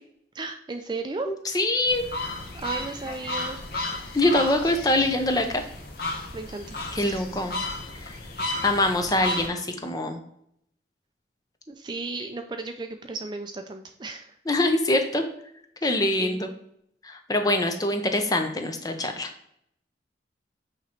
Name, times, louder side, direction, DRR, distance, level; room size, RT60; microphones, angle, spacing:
voice 1, 0.3-1.3 2.5-3.6 6.3-7.2 11.7-14.3 15.8-16.4, right 3 dB, 25° right, 5 dB, 0.4 m, -35 dB
voice 2, 1.3-2.0 4.1-5.6 6.9-7.5 8.0-8.2 8.6-10.2 14.5-15.2 15.8-16.5 17.0-19.3, left 1 dB, 20° left, 5 dB, 0.6 m, -24 dB
sound 1, 1.9-9.5, left 2 dB, 55° left, 1.0 m, -33 dB
8.4 x 3.0 x 4.3 m, 0.72 s
head